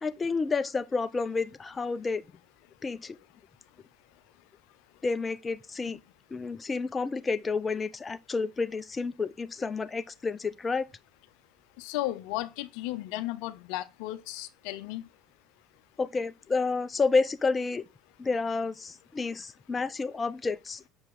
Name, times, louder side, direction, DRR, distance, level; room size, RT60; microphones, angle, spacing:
voice 1, 0.0-2.2 2.8-3.2 5.0-6.0 6.3-10.9 16.0-17.8 18.2-20.8, left 4 dB, 25° left, 0.6 m, -30 dB
voice 2, 11.8-15.0, left 16 dB, 70° left, 0.6 m, -34 dB
7.0 x 5.2 x 3.8 m
hypercardioid pair, 70°, 0 cm